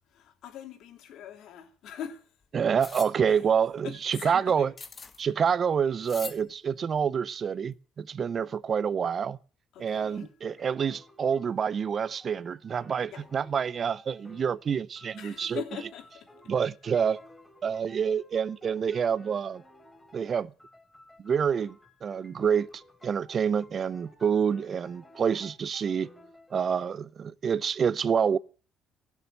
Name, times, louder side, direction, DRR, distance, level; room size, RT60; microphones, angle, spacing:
voice 1, 0.1-2.2 3.3-3.4 3.8-4.7 9.7-10.3 13.1-13.2 15.1-16.3, left 9 dB, 70° left, 3.1 m, -42 dB
voice 2, 2.5-4.7 5.2-9.4 9.8-15.6 16.5-17.2 17.6-19.6 20.1-20.5 21.2-26.1 26.5-28.4, right 7 dB, 50° right, 0.6 m, -27 dB
sound 1, 2.8-3.1 4.8-5.2 6.1-6.4, left 4 dB, 35° left, 1.8 m, -41 dB
sound 2, 9.9-14.7 15.0-20.3 20.6-26.6, left 1 dB, 10° left, 3.7 m, -56 dB
16.0 x 7.2 x 6.6 m
hypercardioid pair, 55°, 0 cm